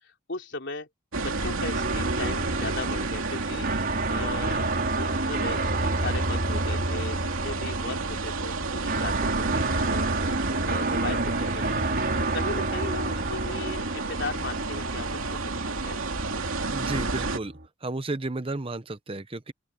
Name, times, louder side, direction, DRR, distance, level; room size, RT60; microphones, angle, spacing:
voice 1, 0.0-0.9 1.2-4.7 5.0-10.4 10.7-11.9 12.3-16.3, left 3 dB, 55° left, 3.5 m, -37 dB
sound 1, 1.1-17.4, right 3 dB, 70° right, 2.8 m, -31 dB
sound 2, 1.7-17.6, right 2 dB, 50° right, 3.2 m, -30 dB
voice 2, 16.7-17.5 17.8-19.5, right 2 dB, 25° right, 0.8 m, -32 dB
open air
head